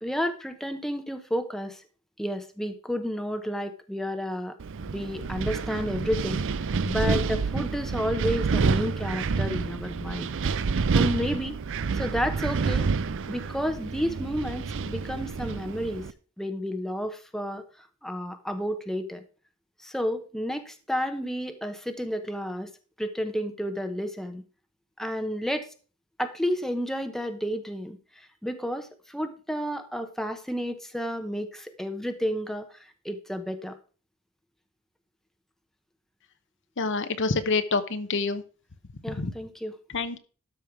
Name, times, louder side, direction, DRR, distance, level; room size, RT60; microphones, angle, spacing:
voice 1, 0.0-1.8 2.2-4.5 4.9-6.4 6.8-10.3 10.9-11.6 11.9-12.9 13.3-16.1 16.4-17.6 18.0-19.2 19.8-22.7 23.0-24.4 25.0-25.7 26.2-33.7 39.0-39.8, equal, ahead, 7 dB, 0.9 m, -31 dB
Wind, 4.6-16.1, right 4 dB, 60° right, 0.5 m, -28 dB
voice 2, 36.8-38.4 39.2-39.3 39.9-40.2, left 3 dB, 55° left, 10 dB, 1.0 m, -27 dB
12.5 x 5.5 x 4.6 m, 0.37 s
head